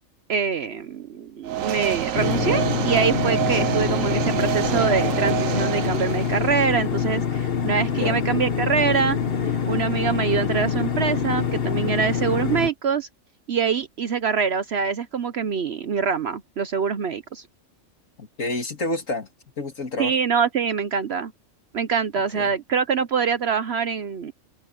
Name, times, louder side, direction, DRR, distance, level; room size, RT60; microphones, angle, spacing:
voice 1, 0.3-9.2 9.4-13.1 13.5-17.4 20.0-21.3 21.7-24.3, right 6 dB, 60° right, 1.0 m, -24 dB
sound 1, 1.4-6.6, right 12 dB, 90° right, 1.2 m, -26 dB
sound 2, 2.1-12.7, left 7 dB, 50° left, 1.3 m, -25 dB
voice 2, 18.2-19.3 19.6-20.1 22.3-22.5, left 2 dB, 80° left, 3.1 m, -29 dB
omnidirectional pair, 1.3 m